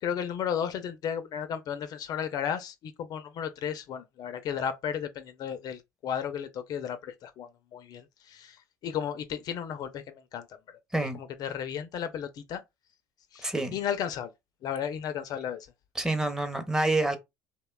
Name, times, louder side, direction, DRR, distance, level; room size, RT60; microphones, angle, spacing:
voice 1, 0.0-10.8 11.1-12.6 13.3-14.3 14.6-15.7, left 8 dB, 50° left, 0.4 m, -34 dB
voice 2, 13.4-13.8 16.0-17.2, right 2 dB, 5° right, 0.6 m, -27 dB
2.7 x 2.1 x 2.2 m
hypercardioid pair, 80°, 9 cm